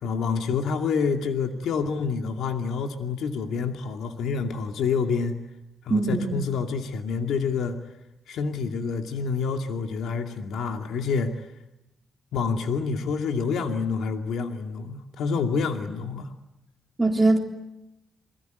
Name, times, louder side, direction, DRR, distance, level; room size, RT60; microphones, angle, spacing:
voice 1, 0.0-5.4 5.8-7.8 8.3-11.5 12.3-16.3, left 5 dB, 90° left, 4 dB, 2.4 m, -27 dB
voice 2, 5.9-6.3 17.0-17.4, right 2 dB, 10° right, 0 dB, 3.6 m, -21 dB
28.5 x 22.5 x 9.4 m, 0.92 s
cardioid pair, 120°, 0 cm